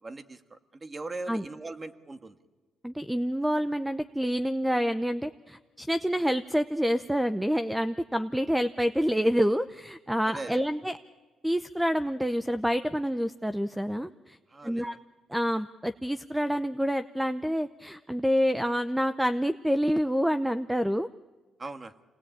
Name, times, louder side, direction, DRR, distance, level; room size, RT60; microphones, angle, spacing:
voice 1, 0.0-2.4 10.2-10.6 14.5-15.0 21.6-21.9, right 3 dB, 30° right, 9 dB, 1.7 m, -40 dB
voice 2, 2.8-11.0 11.4-14.4 14.6-14.9 15.3-21.1, equal, 5° right, 11 dB, 0.7 m, -27 dB
27.5 x 19.5 x 8.7 m, 1.3 s
cardioid pair, 90°, 0 cm